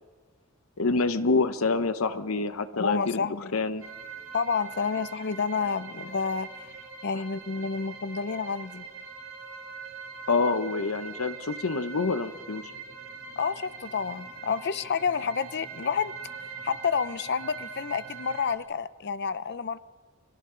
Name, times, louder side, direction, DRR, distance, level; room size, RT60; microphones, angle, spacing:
voice 1, 0.8-3.8 10.3-12.6, left 3 dB, 85° left, 11 dB, 0.9 m, -27 dB
voice 2, 2.7-3.6 4.3-6.7 7.0-8.8 13.4-16.1 16.6-19.8, left 5 dB, 55° left, 16 dB, 0.6 m, -29 dB
sound 1, 3.8-18.6, right 5 dB, 70° right, 2.9 m, -42 dB
29.5 x 24.0 x 3.9 m, 1.4 s
head